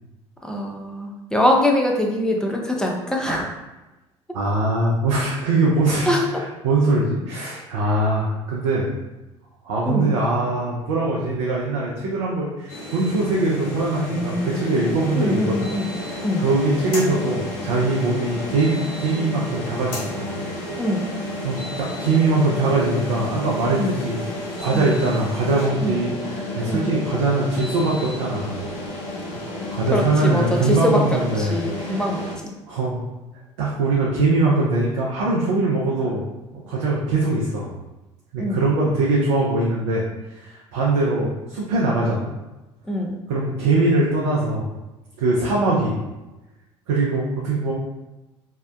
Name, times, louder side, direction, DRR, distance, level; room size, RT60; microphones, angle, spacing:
voice 1, 0.4-3.5 6.1-6.4 9.8-10.1 15.2-16.0 16.2-16.5 20.8-21.1 23.8-23.9 24.7-24.9 25.8-26.0 26.7-26.9 29.9-32.5 38.4-38.6 42.9-43.2, left 1 dB, 5° left, 0 dB, 0.5 m, -23 dB
voice 2, 4.3-8.9 9.6-15.7 16.0-20.4 21.4-24.2 24.6-28.6 29.7-32.0 32.7-33.0 33.6-36.2 36.5-37.7 38.3-42.3 43.3-44.7 45.2-46.0 46.9-47.7, right 2 dB, 75° right, -4 dB, 0.5 m, -22 dB
sound 1, 12.7-32.4, left 1 dB, 70° left, 0.6 m, -31 dB
2.7 x 2.1 x 2.3 m, 1.0 s
hypercardioid pair, 60°, 16 cm